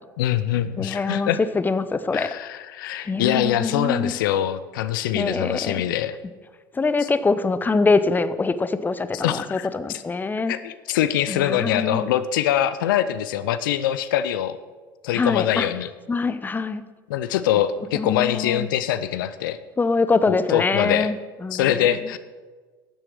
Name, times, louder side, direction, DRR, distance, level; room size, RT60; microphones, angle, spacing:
voice 1, 0.2-1.4 2.1-6.2 7.0-7.1 9.1-10.0 10.5-14.6 15.0-15.9 17.1-19.6 20.3-21.1 21.5-22.2, left 11 dB, 70° left, 13 dB, 0.6 m, -24 dB
voice 2, 0.8-2.3 3.1-4.1 5.1-5.8 6.7-10.5 11.3-12.1 15.1-15.7 16.1-16.8 17.9-18.7 19.8-21.2 21.4-21.9, left 3 dB, 15° left, 13 dB, 0.8 m, -24 dB
12.0 x 7.7 x 6.4 m, 1.4 s
hypercardioid pair, 70°, 11 cm